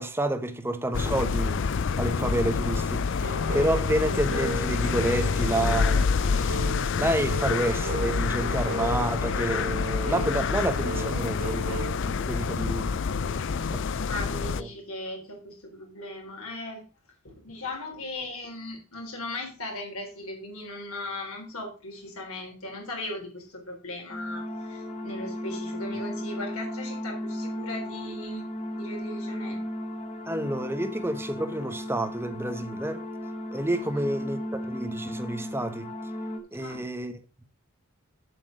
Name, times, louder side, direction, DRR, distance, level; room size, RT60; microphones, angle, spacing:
voice 1, 0.0-1.7 2.0-6.7 7.0-13.0 13.5-13.8 14.6-14.7 30.3-33.0 33.5-35.9 36.5-37.4, right 1 dB, 10° right, 0.9 m, -29 dB
sound 1, 0.9-14.6, left 5 dB, 55° left, 0.4 m, -27 dB
sound 2, 3.2-11.9, right 2 dB, 75° right, 2.4 m, -36 dB
voice 2, 13.1-16.8 17.2-28.5 28.7-29.6 33.8-34.1 36.6-36.9, left 2 dB, 75° left, 3.7 m, -38 dB
sound 3, 24.1-36.4, left 1 dB, 30° left, 1.3 m, -35 dB
7.8 x 6.0 x 6.3 m
head